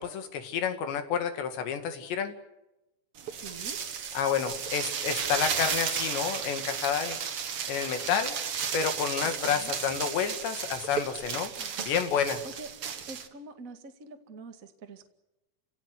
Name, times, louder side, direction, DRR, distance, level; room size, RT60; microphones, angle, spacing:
voice 1, 0.0-2.3 4.1-7.2 7.7-8.4 8.7-11.5 11.9-12.4, left 7 dB, 70° left, 8 dB, 4.2 m, -29 dB
sound 1, 3.2-13.3, right 7 dB, 60° right, 1.5 m, -34 dB
voice 2, 3.4-3.8 9.2-9.8 11.6-11.8 12.6-12.7 13.1-15.1, right 3 dB, 45° right, 5 dB, 1.0 m, -45 dB
29.5 x 17.5 x 9.6 m, 0.95 s
omnidirectional pair, 5.5 m